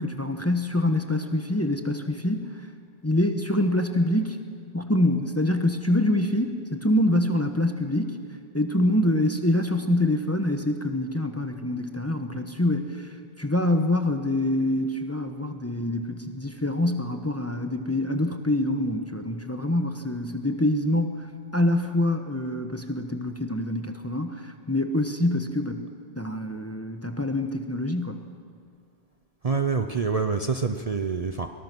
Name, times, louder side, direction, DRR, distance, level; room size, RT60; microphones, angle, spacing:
voice 1, 0.0-2.6 3.0-4.4 4.7-8.2 8.5-25.8 26.2-28.2, left 1 dB, 15° left, 6 dB, 1.1 m, -25 dB
voice 2, 29.4-31.5, right 5 dB, 40° right, 6 dB, 0.8 m, -26 dB
23.5 x 19.5 x 6.1 m, 2.1 s
omnidirectional pair, 1.1 m